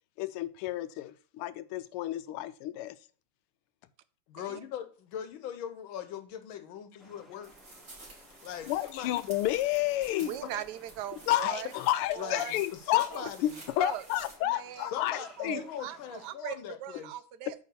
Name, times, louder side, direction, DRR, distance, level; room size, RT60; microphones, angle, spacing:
voice 1, 0.2-3.0 8.7-10.3 11.3-13.1 13.4-15.6 17.5-17.6, left 14 dB, 85° left, 1.5 m, -30 dB
voice 2, 4.3-7.5 8.4-9.1 10.4-10.5 11.4-11.9 12.2-13.6 14.9-17.1, left 9 dB, 70° left, 1.5 m, -40 dB
sound 1, 7.0-16.3, equal, ahead, 0.9 m, -58 dB
sound 2, 7.4-14.4, right 2 dB, 35° right, 2.6 m, -52 dB
voice 3, 10.2-11.7 12.1-12.6 13.1-13.3 13.8-14.0 14.5-14.9 15.4-17.5, right 11 dB, 70° right, 1.0 m, -40 dB
8.4 x 3.5 x 6.7 m
omnidirectional pair, 2.4 m